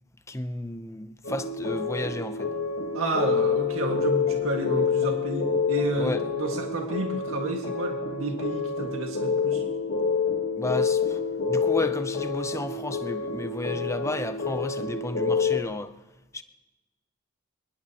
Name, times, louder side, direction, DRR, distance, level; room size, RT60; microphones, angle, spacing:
voice 1, 0.3-2.5 6.0-6.2 10.5-11.2 11.5-15.9 16.3-16.4, left 2 dB, 15° left, 0.7 m, -32 dB
sound 1, 1.2-15.6, left 5 dB, 85° left, 2.2 m, -28 dB
voice 2, 2.9-9.7, right 2 dB, 80° right, 1.8 m, -30 dB
23.0 x 20.5 x 3.0 m
head